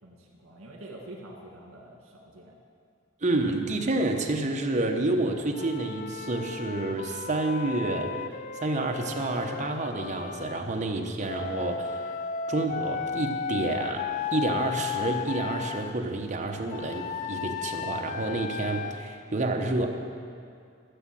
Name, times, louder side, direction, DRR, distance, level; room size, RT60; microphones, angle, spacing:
voice 1, 0.0-2.6, right 1 dB, 75° right, -1 dB, 1.9 m, -46 dB
voice 2, 3.2-8.2 8.5-12.2 12.5-19.9, right 2 dB, 35° right, 3 dB, 1.1 m, -29 dB
Wind instrument woodwind instrument, 5.5-10.6 11.3-15.9 16.7-18.9, left 7 dB, 35° left, 0.3 m, -34 dB
13.5 x 7.5 x 7.6 m, 2.3 s
head